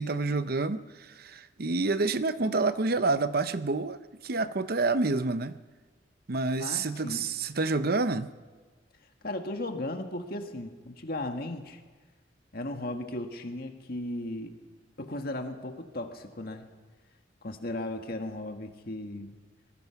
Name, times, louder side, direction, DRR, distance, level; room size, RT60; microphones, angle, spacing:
voice 1, 0.0-4.0 4.2-5.5 6.3-8.3, right 3 dB, 55° right, 12 dB, 0.8 m, -28 dB
voice 2, 6.6-7.3 9.2-11.8 12.5-14.5 15.0-16.7 17.4-19.4, left 1 dB, 55° left, 5 dB, 1.8 m, -36 dB
26.0 x 20.0 x 5.9 m, 1.4 s
head